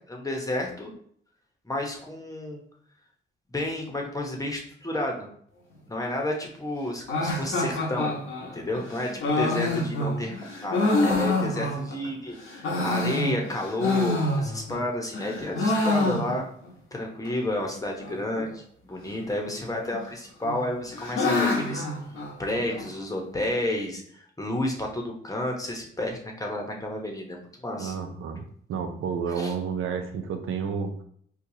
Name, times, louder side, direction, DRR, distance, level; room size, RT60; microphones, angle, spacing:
voice 1, 0.1-0.9 1.6-2.6 3.5-5.3 5.9-8.1 8.4-16.4 16.9-21.8 22.4-28.0 29.3-29.5, left 1 dB, 15° left, 0 dB, 0.9 m, -31 dB
sound 1, 7.1-12.1 12.5-14.8 15.1-16.7 16.9-17.0 17.2-17.3 18.0-18.4 19.5-20.1 20.4-22.8, left 2 dB, 80° left, 0.9 m, -27 dB
voice 2, 27.8-30.9, right 6 dB, 75° right, 6 dB, 0.5 m, -31 dB
4.5 x 2.3 x 2.7 m, 0.62 s
cardioid pair, 75°, 21 cm